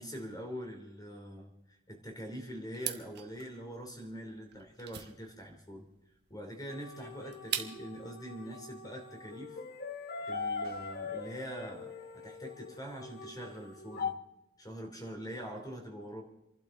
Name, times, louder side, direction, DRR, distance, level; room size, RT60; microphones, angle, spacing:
voice 1, 0.0-1.5 1.9-5.9 6.3-9.6 10.3-14.1 14.6-16.2, equal, 15° left, 2 dB, 3.1 m, -44 dB
sound 1, 2.7-8.0, right 10 dB, 50° right, 1.2 m, -42 dB
sound 2, 6.7-14.1, left 4 dB, 45° left, 1.0 m, -41 dB
sound 3, 10.6-11.2, right 3 dB, 70° right, 2.2 m, -59 dB
28.5 x 12.0 x 3.8 m, 0.88 s
head